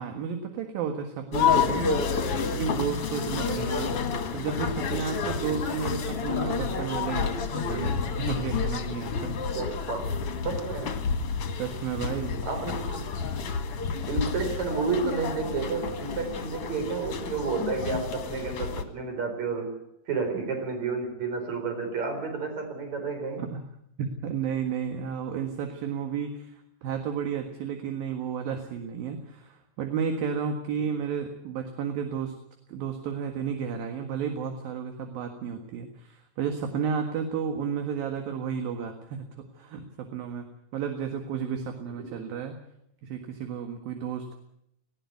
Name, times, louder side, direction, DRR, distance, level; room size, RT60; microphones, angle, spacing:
voice 1, 0.0-2.0 2.5-3.9 4.3-9.4 11.6-12.4 23.5-23.6 24.0-32.3 32.7-40.5 40.7-42.6 43.0-44.3, right 7 dB, 70° right, 5 dB, 3.4 m, -32 dB
sound 1, 1.3-18.8, left 6 dB, 45° left, 2.2 m, -30 dB
voice 2, 9.5-11.1 12.4-13.0 14.1-19.8 20.1-23.4 42.1-42.2, right 4 dB, 45° right, 5 dB, 5.4 m, -31 dB
19.5 x 17.0 x 9.4 m, 0.77 s
omnidirectional pair, 4.5 m